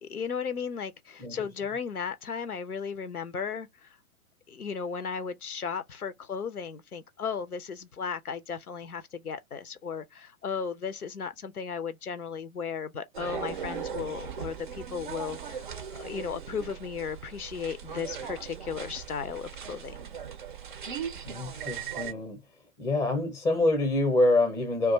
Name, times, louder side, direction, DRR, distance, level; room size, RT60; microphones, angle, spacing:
voice 1, 0.0-4.0 4.5-15.7 15.9-20.0, left 6 dB, 85° left, 0.6 m, -35 dB
sound 1, 13.1-22.1, right 7 dB, 35° right, 0.5 m, -39 dB
voice 2, 21.2-22.4 22.8-24.9, left 2 dB, 5° left, 0.6 m, -26 dB
2.4 x 2.3 x 4.0 m
figure-of-eight pair, 115°, 43 cm